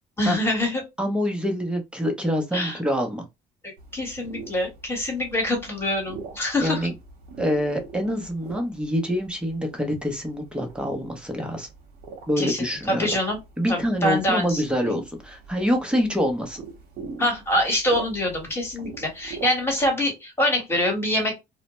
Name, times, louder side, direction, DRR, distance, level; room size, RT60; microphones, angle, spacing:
voice 1, 0.2-0.8 2.5-2.8 3.6-6.9 12.4-13.4 13.7-14.6 17.2-21.4, left 1 dB, 15° left, 1.2 m, -25 dB
voice 2, 1.0-3.2 6.6-6.9 7.4-11.7 12.3-13.1 13.6-16.6, equal, 5° right, 0.7 m, -26 dB
sound 1, 3.8-19.9, right 4 dB, 70° right, 0.9 m, -43 dB
2.1 x 2.1 x 2.9 m
cardioid pair, 110°, 17 cm